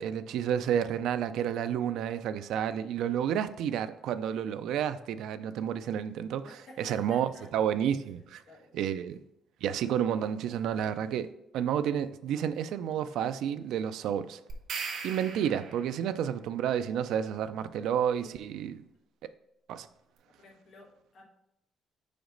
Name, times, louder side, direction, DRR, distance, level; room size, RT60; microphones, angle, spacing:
voice 1, 0.0-6.5 6.8-8.4 8.7-9.2 9.6-11.3 11.5-14.4 15.0-18.8 19.7-19.9, right 9 dB, 85° right, 0.3 m, -30 dB
voice 2, 6.4-7.5 8.5-9.1 18.0-18.4 20.3-21.3, left 3 dB, 45° left, 1.2 m, -54 dB
sound 1, 14.5-16.1, right 5 dB, 60° right, 0.9 m, -38 dB
5.1 x 5.0 x 3.8 m
cardioid pair, 170°, 0 cm